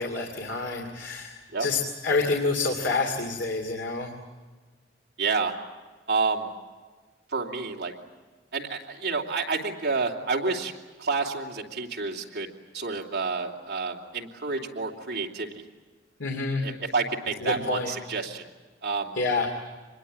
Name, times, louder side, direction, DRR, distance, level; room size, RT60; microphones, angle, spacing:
voice 1, 0.0-4.1 16.2-16.6 17.4-17.9 19.2-19.5, left 3 dB, 80° left, 2 dB, 2.6 m, -28 dB
voice 2, 5.2-5.5 6.1-6.5 7.3-7.9 8.5-10.7 11.0-12.5 12.7-15.5 16.6-18.5 18.8-19.2, right 4 dB, 60° right, 0 dB, 3.0 m, -29 dB
26.0 x 21.5 x 8.5 m, 1.4 s
head